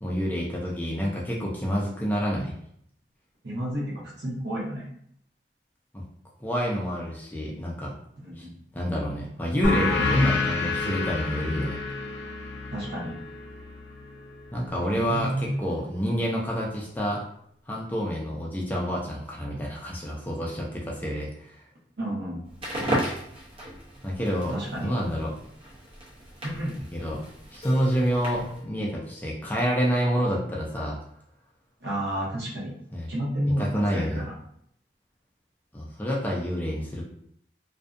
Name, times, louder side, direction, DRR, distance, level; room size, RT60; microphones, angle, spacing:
voice 1, 0.0-2.5 5.9-6.0 6.4-8.0 8.4-8.5 8.7-11.8 14.5-17.2 17.7-21.6 24.0-24.5 24.8-25.3 26.9-31.0 32.9-33.1 33.6-34.2 35.7-37.1, equal, 10° left, -3 dB, 0.4 m, -28 dB
voice 2, 3.4-4.9 8.2-8.5 12.7-13.1 14.9-15.5 22.0-22.4 24.5-24.9 26.4-26.8 31.8-32.7 33.1-34.3, right 1 dB, 65° right, -5 dB, 0.9 m, -31 dB
sound 1, 9.6-14.8, left 3 dB, 90° left, 0.5 m, -29 dB
Crackle, 22.5-28.6, right 1 dB, 30° right, 0.8 m, -35 dB
Keyboard (musical), 27.6-30.5, left 1 dB, 35° left, 0.7 m, -46 dB
2.5 x 2.2 x 2.5 m, 0.68 s
head